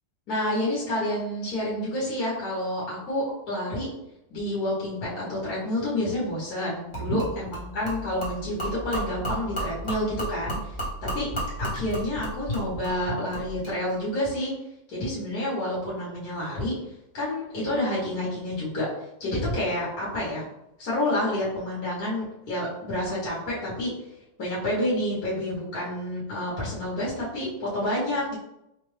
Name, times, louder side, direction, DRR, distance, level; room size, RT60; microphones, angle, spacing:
voice 1, 0.3-3.9 4.3-14.6 14.9-16.8 17.1-18.9 19.2-20.4 20.8-23.9 24.4-28.4, left 1 dB, 55° left, -6 dB, 1.6 m, -29 dB
Gurgling / Liquid, 6.9-13.8, right 1 dB, 20° left, 1.1 m, -33 dB
4.4 x 2.5 x 3.3 m, 0.86 s
omnidirectional pair, 2.0 m